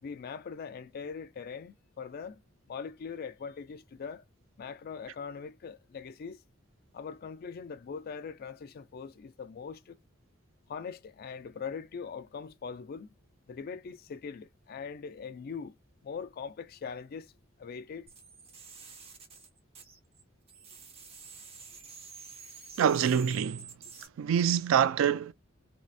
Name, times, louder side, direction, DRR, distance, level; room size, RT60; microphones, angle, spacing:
voice 1, 0.0-2.4 2.7-4.2 4.6-6.4 6.9-10.0 10.7-13.1 13.5-15.7 16.0-17.3 17.6-18.1, left 6 dB, 50° left, 0.3 m, -41 dB
sound 1, 18.1-20.2 20.5-24.1, right 5 dB, 30° right, 0.6 m, -49 dB
voice 2, 22.8-23.7 24.2-25.3, right 8 dB, 75° right, 0.3 m, -25 dB
2.7 x 2.1 x 2.3 m
head